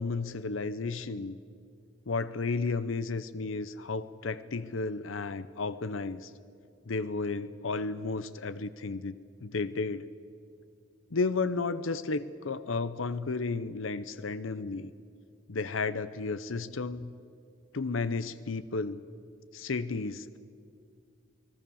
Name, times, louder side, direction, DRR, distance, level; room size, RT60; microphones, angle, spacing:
voice 1, 0.0-1.4 2.1-6.3 6.9-9.1 9.4-10.1 11.1-14.9 15.5-17.1 17.7-19.0 19.5-20.4, left 3 dB, 80° left, 14 dB, 0.7 m, -33 dB
29.0 x 19.0 x 7.1 m, 2.3 s
head